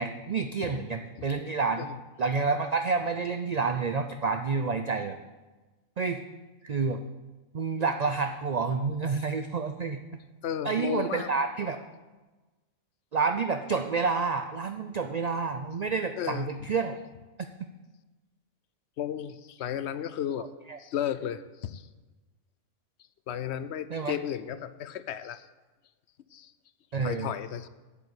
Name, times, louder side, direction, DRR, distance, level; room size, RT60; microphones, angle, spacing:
voice 1, 0.0-1.9 2.2-5.2 6.0-6.2 6.6-7.0 7.5-10.0 10.6-11.8 13.1-16.9 20.7-20.8 23.9-24.1 26.9-27.3, right 4 dB, 65° right, 7 dB, 0.4 m, -29 dB
voice 2, 10.4-11.3 16.2-16.5 19.0-20.5 20.8-21.9 23.3-25.5 26.3-26.5 27.0-27.7, left 9 dB, 65° left, 13 dB, 0.8 m, -34 dB
8.6 x 7.2 x 8.3 m, 1.2 s
omnidirectional pair, 1.4 m